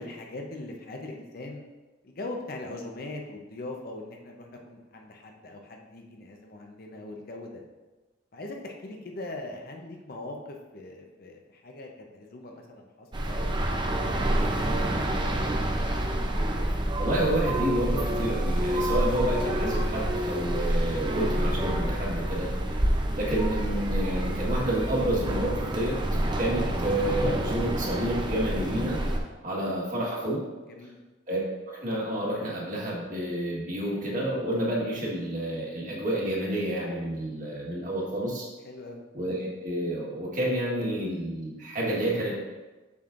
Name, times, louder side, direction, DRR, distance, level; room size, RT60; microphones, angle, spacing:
voice 1, 0.0-1.6 2.0-7.6 8.3-15.1 22.2-22.5 29.4-29.7 30.7-31.0 38.6-39.0, left 2 dB, 50° left, 1 dB, 0.7 m, -41 dB
sound 1, 13.1-29.2, right 1 dB, 25° right, 0.6 m, -28 dB
voice 2, 17.0-22.5 23.1-26.0 26.4-29.0 29.4-30.4 31.3-31.4 31.7-38.5 39.1-42.4, right 1 dB, 45° right, -4 dB, 1.6 m, -29 dB
7.1 x 6.2 x 2.5 m, 1.2 s
head